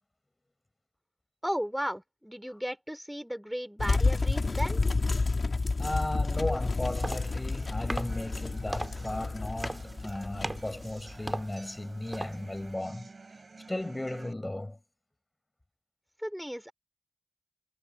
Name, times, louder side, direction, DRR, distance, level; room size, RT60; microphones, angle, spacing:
voice 1, 1.4-4.8 16.2-16.7, equal, 5° right, 3.6 m, -35 dB
sound 1, 3.8-11.4, left 3 dB, 70° left, 1.4 m, -30 dB
voice 2, 5.8-13.1 13.7-14.8, left 1 dB, 25° left, 6.1 m, -35 dB
sound 2, 6.3-14.3, right 3 dB, 70° right, 4.1 m, -51 dB
sound 3, 6.7-12.8, right 2 dB, 35° right, 3.0 m, -41 dB
wide cardioid pair, 55°, 0 cm